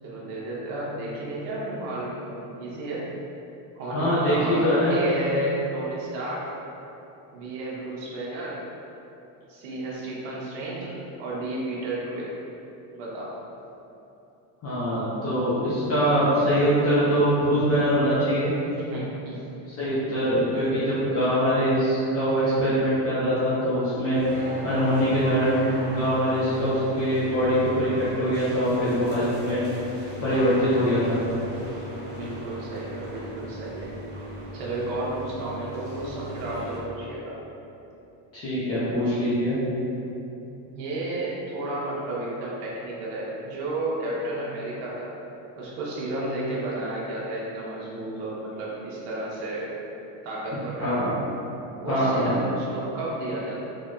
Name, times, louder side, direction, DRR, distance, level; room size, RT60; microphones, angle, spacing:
voice 1, 0.0-3.1 3.7-6.6 7.3-8.7 9.5-10.9 11.2-12.3 12.9-13.4 18.6-19.4 20.0-20.4 26.5-27.0 32.1-33.9 34.5-37.4 40.7-45.1 45.6-49.7 50.2-51.0 51.8-53.5, right 1 dB, 75° right, -5 dB, 1.1 m, -32 dB
voice 2, 3.9-5.0 14.6-18.5 19.8-24.2 24.6-29.6 30.2-31.2 38.3-39.6 50.8-51.2 51.9-52.3, equal, 30° left, -11 dB, 0.7 m, -23 dB
sound 1, 24.1-36.8, right 1 dB, 25° right, 0.4 m, -38 dB
4.1 x 2.8 x 2.3 m, 2.9 s
cardioid pair, 145°, 50 cm